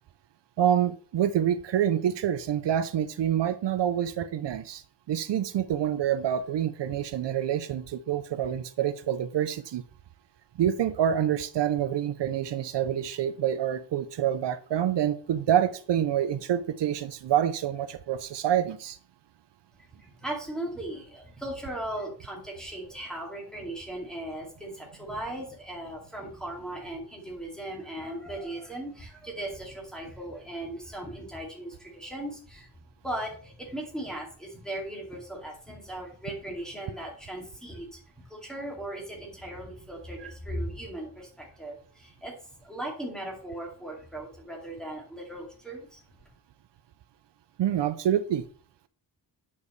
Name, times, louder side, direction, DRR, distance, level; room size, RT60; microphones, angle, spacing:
voice 1, 0.6-4.8 5.1-9.8 10.6-19.0 40.2-40.3 47.6-48.4, right 10 dB, 80° right, 12 dB, 0.6 m, -27 dB
voice 2, 20.0-32.7 33.0-38.0 38.3-46.0, right 1 dB, ahead, -2 dB, 2.3 m, -38 dB
8.4 x 7.0 x 3.2 m, 0.43 s
wide cardioid pair, 175°, 42 cm